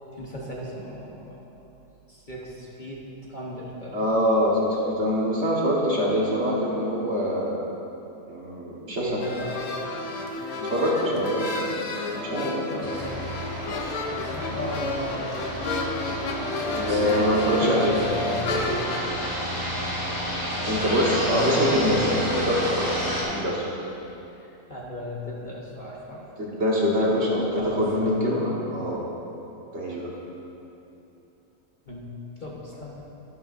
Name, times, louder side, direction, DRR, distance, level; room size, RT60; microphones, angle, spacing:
voice 1, 0.1-1.4 2.1-3.0 3.3-4.0 6.6-6.8 9.0-9.7 12.7-13.3 14.0-15.5 17.3-18.9 21.2-22.1 24.4-26.2 27.0-28.4 31.9-32.1 32.4-33.0, left 1 dB, 35° left, -4 dB, 1.1 m, -35 dB
voice 2, 3.9-7.5 8.3-9.2 10.5-12.9 16.7-18.1 20.6-22.1 22.3-23.6 26.4-29.1 29.7-30.1, equal, 50° right, -4 dB, 1.7 m, -24 dB
sound 1, 9.2-19.1, left 3 dB, 80° left, 1.3 m, -32 dB
sound 2, 12.8-23.2, equal, 15° left, 2.2 m, -30 dB
12.0 x 11.5 x 2.6 m, 2.9 s
omnidirectional pair, 1.5 m